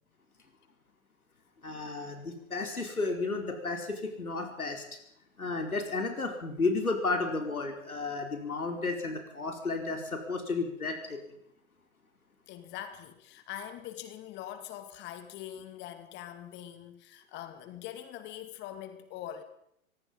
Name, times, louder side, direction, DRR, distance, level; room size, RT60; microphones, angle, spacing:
voice 1, 1.6-4.8 5.4-11.2, left 3 dB, 80° left, 3 dB, 4.9 m, -32 dB
voice 2, 12.5-19.4, left 11 dB, 25° left, 9 dB, 2.3 m, -43 dB
24.5 x 20.5 x 5.6 m, 0.75 s
figure-of-eight pair, 120°, 42 cm